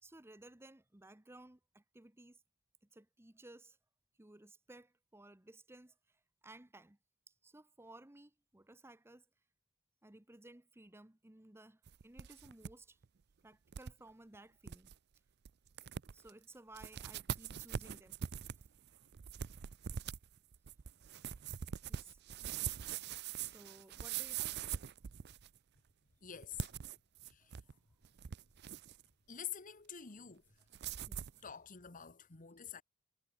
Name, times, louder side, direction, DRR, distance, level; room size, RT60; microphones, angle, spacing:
voice 1, 0.0-2.4 2.8-3.8 4.2-7.0 7.3-9.3 10.0-13.0 13.4-14.9 16.1-18.6 21.9-22.2 23.4-24.6 27.4-27.5 30.8-31.2, right 2 dB, 10° right, 0.9 m, -58 dB
sound 1, 11.9-12.7 13.0-13.1 13.7-13.9 14.3-14.4 14.7-15.0 15.5-15.6 15.8-16.3 16.7-25.6 26.4-27.7 28.0-29.0 30.7-31.4, right 8 dB, 50° right, 0.5 m, -43 dB
voice 2, 26.2-26.7 27.3-27.6 29.3-30.4 31.4-32.8, left 8 dB, 40° left, 1.4 m, -47 dB
head